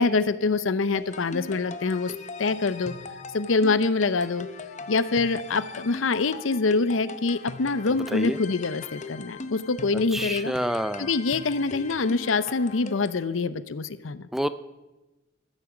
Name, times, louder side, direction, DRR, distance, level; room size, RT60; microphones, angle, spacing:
voice 1, 0.0-2.1 2.4-2.9 3.3-4.5 4.9-10.5 11.0-14.3, left 3 dB, 85° left, 15 dB, 0.7 m, -25 dB
sound 1, 0.9-13.2, left 4 dB, 40° left, 0.7 m, -40 dB
voice 2, 7.9-8.4 9.9-11.1 14.3-14.5, equal, ahead, 12 dB, 0.4 m, -29 dB
14.0 x 8.9 x 7.1 m, 1.1 s
head